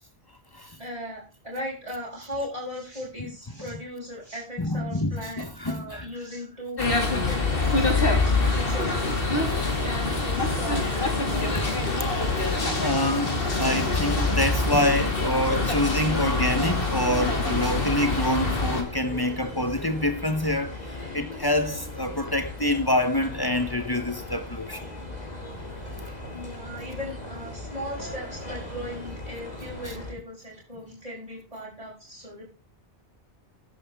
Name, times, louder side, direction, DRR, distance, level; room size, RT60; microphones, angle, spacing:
voice 1, 0.8-11.8 26.3-32.4, equal, 35° right, 6.5 m, -38 dB
voice 2, 4.6-6.1 9.4-9.7 11.4-11.5 12.8-20.8 21.1-24.8, left 1 dB, 25° left, 1.1 m, -26 dB
sound 1, 6.8-18.8, left 3 dB, 65° left, 2.6 m, -25 dB
sound 2, 16.1-30.1, left 1 dB, 40° left, 3.1 m, -38 dB
14.0 x 10.5 x 3.6 m
omnidirectional pair, 1.0 m